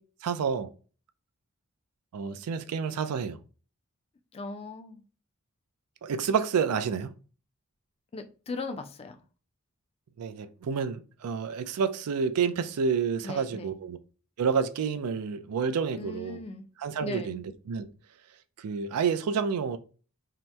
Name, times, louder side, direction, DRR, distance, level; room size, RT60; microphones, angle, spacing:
voice 1, 0.2-0.7 2.1-3.4 6.0-7.1 10.2-14.0 14.4-16.4 16.8-17.9 18.6-19.8, right 6 dB, 85° right, 0.4 m, -29 dB
voice 2, 4.3-5.0 8.1-9.2 13.2-13.8 16.0-16.6 17.0-17.4, left 3 dB, 25° left, 0.3 m, -38 dB
2.8 x 2.0 x 3.3 m
head